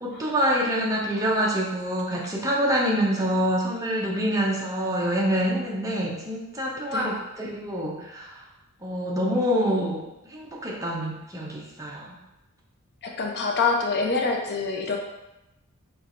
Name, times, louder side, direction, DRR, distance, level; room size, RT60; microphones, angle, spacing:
voice 1, 0.0-8.4 8.8-12.2, equal, 15° right, -3 dB, 0.7 m, -26 dB
voice 2, 13.0-15.0, left 4 dB, 50° left, 1 dB, 0.6 m, -26 dB
4.5 x 3.2 x 2.5 m, 0.95 s
head